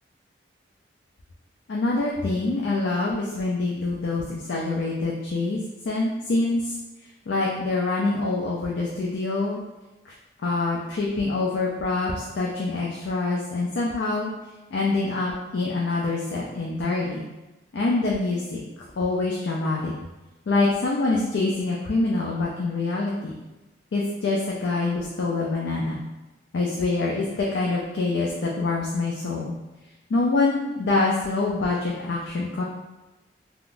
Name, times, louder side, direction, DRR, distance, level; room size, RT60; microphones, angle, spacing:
voice 1, 1.7-5.6 5.8-6.7 7.3-9.6 10.1-10.2 10.4-14.3 14.7-17.3 17.7-18.6 19.0-19.9 20.5-23.3 23.9-26.0 26.5-29.5 30.1-32.6, left 3 dB, 80° left, -3 dB, 0.4 m, -25 dB
3.5 x 2.3 x 2.5 m, 1.1 s
head